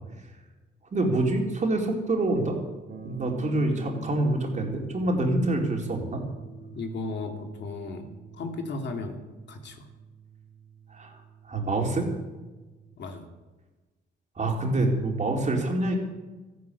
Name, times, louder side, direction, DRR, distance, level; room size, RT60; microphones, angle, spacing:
voice 1, 0.9-2.6 3.0-6.2 10.9-11.2 11.5-12.1 14.4-16.0, right 2 dB, 35° right, 1 dB, 4.1 m, -26 dB
sound 1, 2.9-13.0, right 5 dB, 60° right, 3.7 m, -45 dB
voice 2, 6.7-8.1 8.3-9.2 9.5-9.9 13.0-13.2, left 3 dB, 60° left, 4 dB, 2.8 m, -35 dB
14.0 x 11.5 x 8.5 m, 1.2 s
cardioid pair, 90°, 20 cm